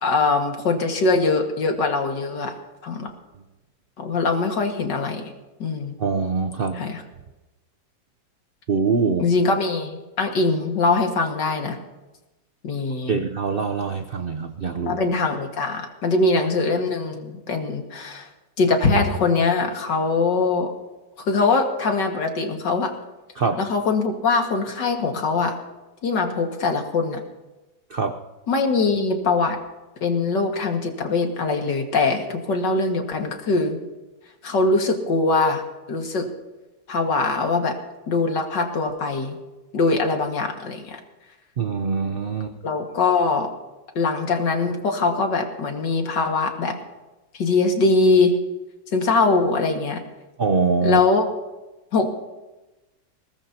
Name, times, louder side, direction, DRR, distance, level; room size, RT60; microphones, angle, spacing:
voice 1, 0.0-2.5 2.8-3.1 4.0-5.3 5.6-6.0 6.7-7.0 9.2-11.8 12.6-13.2 14.9-18.3 18.6-20.7 21.2-22.9 23.6-25.5 26.0-27.2 28.5-29.6 30.0-33.8 34.4-35.6 35.9-36.3 36.9-37.8 38.1-39.4 39.7-41.0 42.6-43.5 44.0-46.8 47.4-48.3 48.9-50.0 50.8-51.3 51.9-52.1, left 3 dB, 65° left, 3 dB, 2.4 m, -22 dB
voice 2, 6.0-6.8 8.7-9.3 13.1-15.0 23.4-23.6 27.9-28.2 41.6-42.5 50.4-51.0, right 5 dB, 70° right, 7 dB, 0.5 m, -23 dB
21.5 x 18.5 x 2.8 m, 1.1 s
omnidirectional pair, 2.1 m